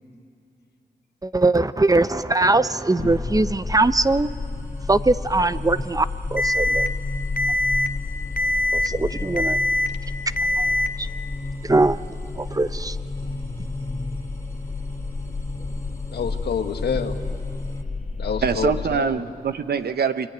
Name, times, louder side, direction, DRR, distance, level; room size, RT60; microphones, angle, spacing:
voice 1, 1.2-4.3 4.9-6.1 6.3-6.9 8.7-9.6 10.6-10.7 11.0-11.1 11.6-12.0 12.4-13.0, right 2 dB, 20° right, 13 dB, 0.8 m, -21 dB
sound 1, 2.6-17.8, left 1 dB, 15° left, 2.9 m, -38 dB
sound 2, 3.0-19.0, left 3 dB, 45° left, 1.7 m, -32 dB
Alarm, 6.4-6.9 7.4-7.9 8.4-8.9 9.4-9.9 10.4-10.9, left 1 dB, 65° left, 1.3 m, -22 dB
voice 2, 16.1-17.2 18.2-19.2, left 6 dB, 90° left, 6 dB, 1.4 m, -28 dB
voice 3, 18.4-20.3, right 6 dB, 75° right, 11 dB, 0.9 m, -24 dB
26.5 x 23.5 x 9.3 m, 2.7 s
cardioid pair, 50°, 17 cm